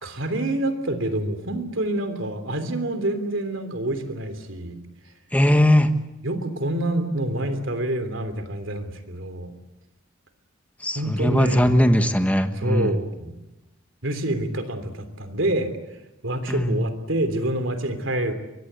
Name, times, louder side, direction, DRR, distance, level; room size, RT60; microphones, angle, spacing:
voice 1, 0.0-4.8 6.2-9.5 10.9-11.8 12.5-13.3 14.0-15.7 16.2-18.3, right 1 dB, 70° right, 9 dB, 3.2 m, -27 dB
voice 2, 5.3-5.9 10.8-12.9 16.5-16.8, equal, 5° left, 7 dB, 1.4 m, -19 dB
23.5 x 23.0 x 8.2 m, 0.98 s
head